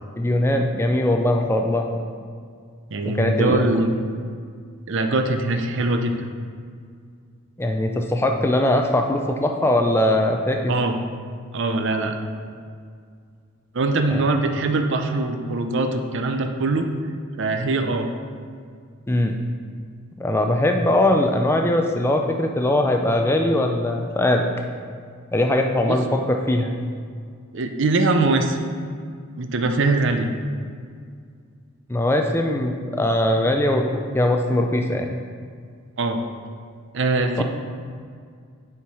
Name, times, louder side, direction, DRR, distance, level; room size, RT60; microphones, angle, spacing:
voice 1, 0.2-1.9 3.0-3.8 7.6-10.7 14.1-14.2 19.1-19.4 20.2-24.5 25.3-26.7 31.9-35.2 37.4-37.5, left 1 dB, 10° left, 3 dB, 0.3 m, -21 dB
voice 2, 2.9-3.9 4.9-6.1 10.7-11.0 11.5-12.2 13.7-16.9 17.4-18.1 25.9-26.0 27.5-28.6 29.4-30.3 36.0-36.2 36.9-37.4, right 2 dB, 55° right, 6 dB, 0.5 m, -22 dB
7.0 x 4.6 x 4.7 m, 2.1 s
head